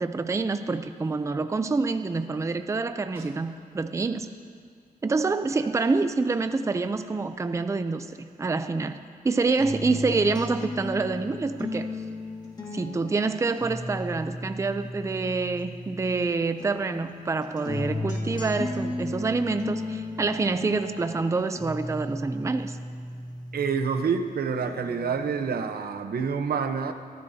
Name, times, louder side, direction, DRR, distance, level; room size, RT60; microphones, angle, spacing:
voice 1, 0.0-4.3 5.0-9.0 9.2-11.9 12.7-22.8, right 3 dB, 20° right, 10 dB, 0.4 m, -27 dB
Snare drum, 3.1-4.1 8.5-8.6, right 2 dB, 35° right, 1.5 m, -49 dB
sound 1, 9.6-16.2 16.6-24.2 24.6-25.6, left 2 dB, 25° left, 1.8 m, -35 dB
voice 2, 23.5-26.9, right 6 dB, 90° right, 8 dB, 0.8 m, -27 dB
24.0 x 13.5 x 2.8 m, 2.1 s
wide cardioid pair, 165°, 15 cm